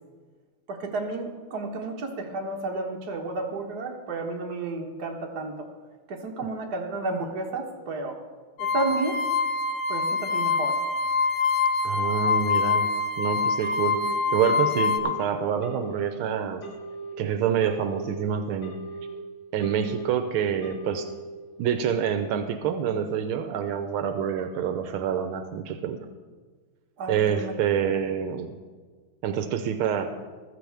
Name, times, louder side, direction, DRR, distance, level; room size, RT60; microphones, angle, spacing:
voice 1, 0.7-5.7 6.1-8.2 8.6-9.2 9.9-10.8 27.0-27.5, right 3 dB, 50° right, 1 dB, 1.7 m, -32 dB
sound 1, 8.6-15.0, left 4 dB, 90° left, 1.7 m, -25 dB
voice 2, 11.8-12.9 13.2-14.0 14.3-16.6 17.2-18.8 19.5-21.1 21.6-26.1 27.1-28.5 29.2-30.1, right 8 dB, 85° right, 8 dB, 1.5 m, -27 dB
Telephone, 13.6-14.1 14.6-15.1 15.6-16.1 16.6-17.1 17.6-18.1 18.6-19.1 19.6-20.1 20.6-21.1, right 3 dB, 60° left, 4.4 m, -38 dB
15.0 x 13.0 x 3.4 m, 1.5 s
omnidirectional pair, 2.3 m